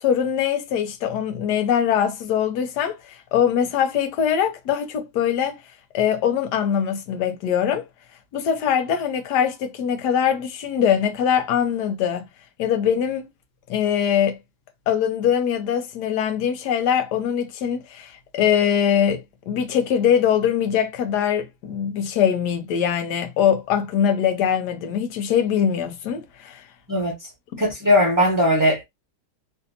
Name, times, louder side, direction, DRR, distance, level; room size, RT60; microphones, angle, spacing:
voice 1, 0.0-5.6 5.9-7.8 8.3-12.2 12.6-13.3 13.7-14.4 14.9-19.2 19.5-26.6, left 8 dB, 85° left, 1.3 m, -22 dB
voice 2, 26.9-27.3 27.6-28.8, left 1 dB, 20° right, 0.6 m, -19 dB
3.3 x 2.6 x 2.5 m
omnidirectional pair, 1.7 m